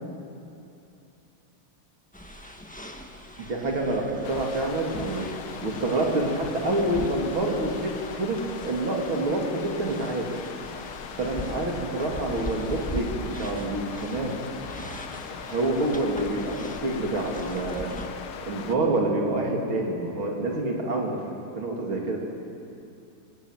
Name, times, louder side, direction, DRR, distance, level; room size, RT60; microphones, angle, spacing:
sound 1, 2.1-18.1, equal, 5° left, 1.2 m, -41 dB
voice 1, 3.4-5.3 5.6-10.4 11.2-14.4 15.5-17.9 18.4-21.2 21.6-22.2, right 2 dB, 70° right, -1 dB, 3.8 m, -27 dB
sound 2, 4.2-18.8, left 7 dB, 85° left, 2.0 m, -40 dB
23.0 x 20.5 x 9.2 m, 2.7 s
omnidirectional pair, 2.3 m